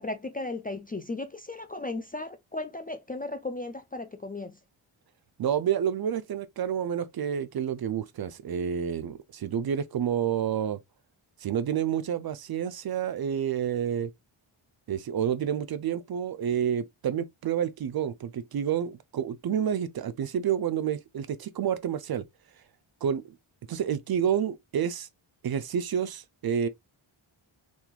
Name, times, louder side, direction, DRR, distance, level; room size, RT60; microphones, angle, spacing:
voice 1, 0.0-4.6, left 2 dB, 20° left, 0.3 m, -36 dB
voice 2, 5.4-10.8 11.4-14.1 14.9-22.2 23.0-23.3 23.7-25.1 25.4-26.7, right 8 dB, 50° right, 0.5 m, -29 dB
2.9 x 2.4 x 2.2 m
cardioid pair, 50°, 50 cm